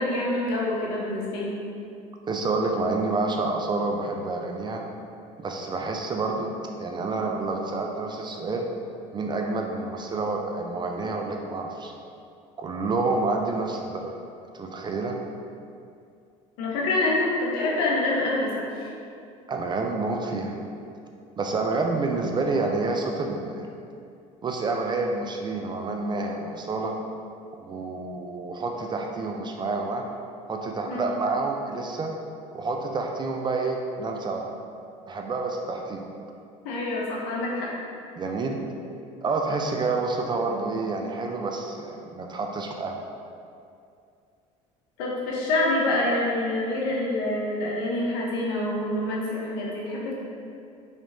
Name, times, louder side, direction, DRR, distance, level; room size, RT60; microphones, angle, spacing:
voice 1, 0.0-1.6 16.6-18.9 30.9-31.1 36.6-37.7 45.0-50.1, left 2 dB, 75° left, -4 dB, 0.8 m, -26 dB
voice 2, 2.3-4.8 5.4-6.5 6.8-8.7 9.1-11.9 12.6-14.1 14.5-15.2 19.5-20.6 21.4-23.7 24.4-26.9 27.6-30.0 30.5-32.1 32.5-34.6 35.1-36.1 38.2-38.6 39.2-43.0, right 3 dB, 25° right, 2 dB, 0.4 m, -28 dB
3.3 x 2.9 x 2.6 m, 2.4 s
hypercardioid pair, 75°, 17 cm